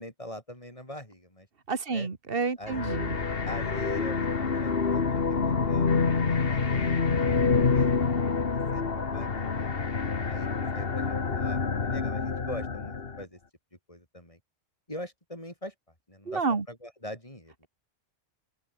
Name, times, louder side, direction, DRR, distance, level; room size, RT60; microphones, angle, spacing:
voice 1, 0.0-1.5 1.9-2.1 2.6-2.9 3.4-7.1 7.7-7.9 8.5-9.7 10.2-13.4 13.9-14.4 14.9-15.7 16.1-16.4 16.7-17.7, left 1 dB, 30° left, 6.4 m, -43 dB
voice 2, 1.7-3.2 16.3-16.6, right 4 dB, 55° right, 2.2 m, -29 dB
sound 1, 2.7-13.2, left 5 dB, 60° left, 1.8 m, -27 dB
open air
omnidirectional pair, 1.1 m